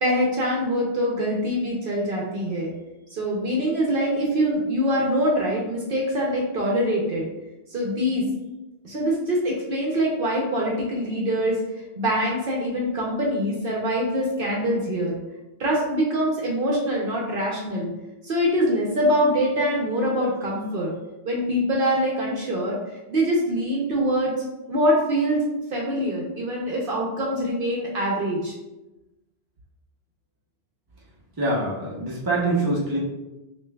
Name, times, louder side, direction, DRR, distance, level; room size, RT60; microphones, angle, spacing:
voice 1, 0.0-2.7 3.1-7.3 7.7-8.2 8.8-11.6 11.9-15.2 15.6-17.9 18.2-20.9 21.2-22.8 23.1-24.3 24.7-25.4 25.7-28.5, equal, 55° right, -3 dB, 0.8 m, -24 dB
voice 2, 31.4-33.0, right 2 dB, 25° right, -4 dB, 0.7 m, -24 dB
5.4 x 2.5 x 2.2 m, 1.0 s
omnidirectional pair, 1.2 m